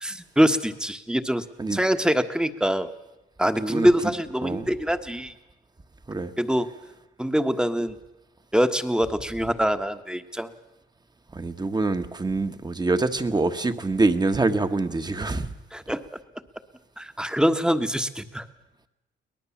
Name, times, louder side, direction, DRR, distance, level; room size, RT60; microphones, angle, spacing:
voice 1, 0.0-1.4 1.7-2.9 3.4-5.3 6.4-6.7 7.2-7.9 8.5-10.5 15.7-16.0 17.0-18.4, equal, 5° right, 1.3 m, -24 dB
voice 2, 3.6-4.1 4.4-4.7 6.1-6.3 11.3-15.5, right 3 dB, 20° right, 1.4 m, -25 dB
23.0 x 19.0 x 7.3 m
cardioid pair, 90°, 20 cm